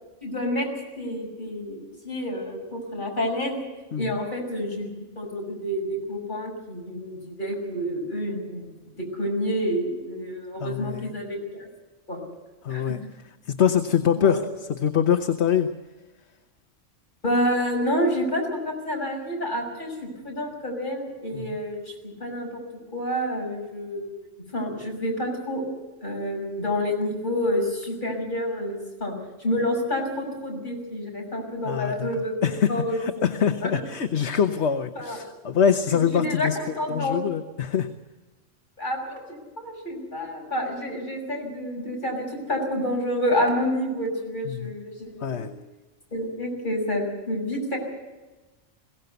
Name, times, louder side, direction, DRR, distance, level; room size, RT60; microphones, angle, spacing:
voice 1, 0.2-0.7 1.0-3.6 4.0-4.9 5.2-8.7 9.0-11.7 12.1-12.2 12.7-12.9 14.2-14.4 17.2-22.6 22.9-24.1 24.5-25.6 26.0-29.1 29.4-32.3 32.7-33.0 33.6-33.7 34.9-35.2 35.9-37.2 38.8-45.5 46.1-47.8, equal, 40° left, 0 dB, 6.2 m, -28 dB
voice 2, 10.6-11.1 12.6-14.4 14.7-15.7 21.3-21.6 31.6-32.1 32.4-37.9 44.4-44.7 45.2-45.5, left 8 dB, 60° left, 7 dB, 1.2 m, -24 dB
22.0 x 17.0 x 8.1 m, 1.1 s
omnidirectional pair, 1.3 m